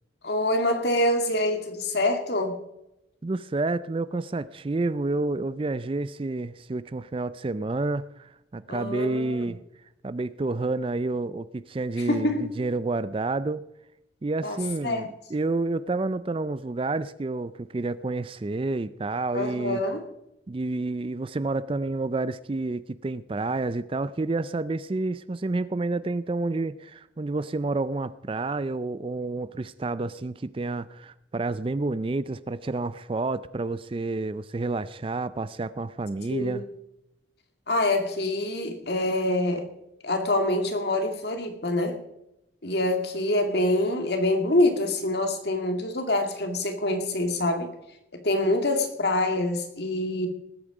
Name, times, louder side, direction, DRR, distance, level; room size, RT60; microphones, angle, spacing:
voice 1, 0.2-2.6 8.7-9.5 12.1-12.5 14.4-15.1 19.3-20.0 36.2-36.6 37.7-39.7 40.0-42.0 42.6-47.7 48.2-50.3, left 1 dB, 55° left, 5 dB, 2.1 m, -26 dB
voice 2, 3.2-9.6 10.0-12.3 12.6-13.6 14.2-19.8 20.5-36.6, right 2 dB, 25° right, 16 dB, 0.4 m, -29 dB
19.5 x 8.8 x 5.0 m, 0.86 s
head